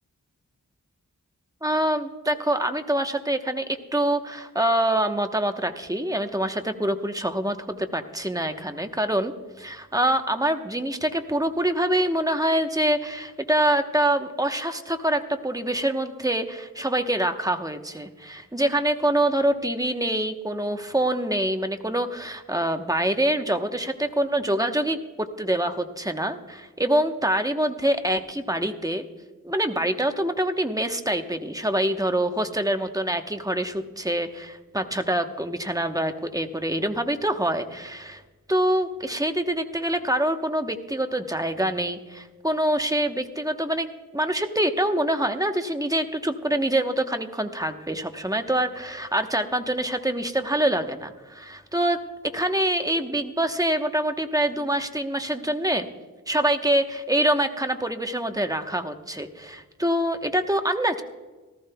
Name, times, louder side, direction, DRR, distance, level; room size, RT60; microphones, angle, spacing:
voice 1, 1.6-3.7 3.9-29.0 29.4-38.2 38.5-43.9 44.1-52.0 52.3-55.9 56.3-61.0, right 1 dB, 10° right, 6 dB, 1.0 m, -25 dB
18.0 x 14.0 x 2.3 m, 1.3 s
wide cardioid pair, 50°, 33 cm